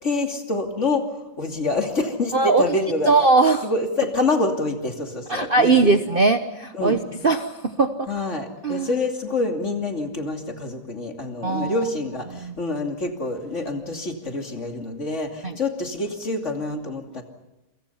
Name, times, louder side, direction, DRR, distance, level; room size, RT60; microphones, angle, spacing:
voice 1, 0.0-3.1 3.6-5.9 6.7-7.0 8.1-17.2, left 2 dB, 45° left, 3 dB, 3.0 m, -26 dB
voice 2, 2.3-2.6 3.1-3.7 5.3-8.1 8.6-8.9 11.4-11.8 12.3-12.5 15.4-15.6, right 3 dB, 40° right, 8 dB, 1.0 m, -20 dB
28.5 x 24.0 x 5.7 m, 0.95 s
omnidirectional pair, 1.8 m